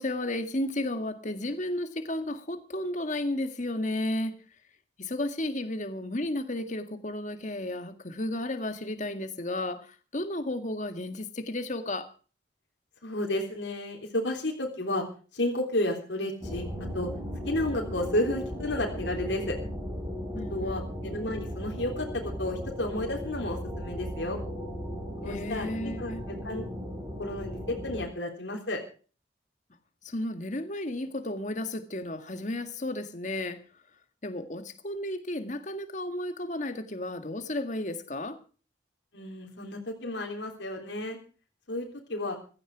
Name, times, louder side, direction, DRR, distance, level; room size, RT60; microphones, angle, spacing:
voice 1, 0.0-4.3 5.0-12.1 20.3-20.9 25.2-26.2 30.0-33.6 34.2-38.4, left 1 dB, 40° left, 1.9 m, -33 dB
voice 2, 13.0-15.1 15.3-16.7 16.9-17.1 17.4-19.6 20.5-24.4 25.2-26.6 27.2-28.8 39.1-41.2 41.7-42.4, left 1 dB, 80° left, 3.5 m, -32 dB
sound 1, 16.4-28.1, equal, 20° right, 4.1 m, -36 dB
16.0 x 14.0 x 4.8 m
head